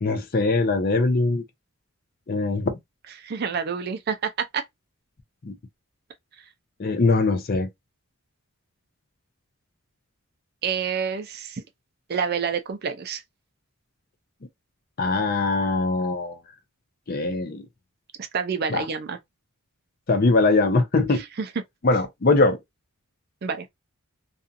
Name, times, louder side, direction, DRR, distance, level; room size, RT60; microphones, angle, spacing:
voice 1, 0.0-1.4 2.3-2.7 5.5-5.6 6.8-7.7 15.0-16.4 17.1-17.6 18.7-18.8 20.1-21.2 21.8-22.6, left 3 dB, 40° left, 0.5 m, -21 dB
voice 2, 3.2-4.6 10.6-11.6 12.1-13.2 18.2-19.2 21.4-21.5 23.4-23.7, right 6 dB, 45° right, 0.4 m, -28 dB
2.5 x 2.3 x 2.5 m
head